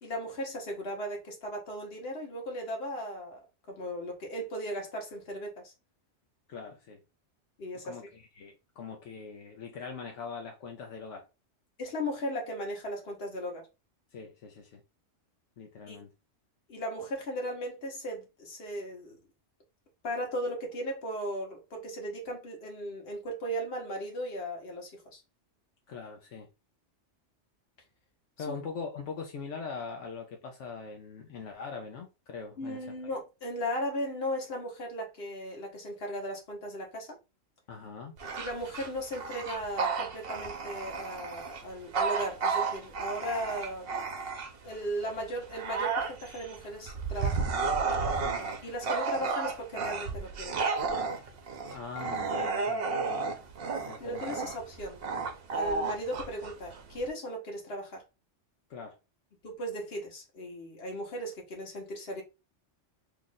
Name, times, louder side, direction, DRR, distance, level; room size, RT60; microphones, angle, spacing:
voice 1, 0.0-5.7 7.6-8.0 11.8-13.7 15.9-16.0 16.7-19.2 20.0-25.2 28.5-28.6 32.6-37.1 38.4-43.9 44.6-47.5 48.6-50.6 54.0-55.0 55.5-58.0 59.4-62.2, equal, 55° left, 1.4 m, -37 dB
voice 2, 6.5-7.0 7.8-11.3 14.1-14.8 15.6-16.1 25.9-26.5 28.4-32.8 37.7-38.1 48.1-48.4 51.7-53.2 53.9-54.2 58.7-59.0, left 5 dB, 80° left, 1.0 m, -42 dB
Bark / Growling, 38.2-44.7 45.2-57.1, right 4 dB, 60° right, 0.9 m, -32 dB
3.0 x 2.5 x 3.9 m
omnidirectional pair, 1.2 m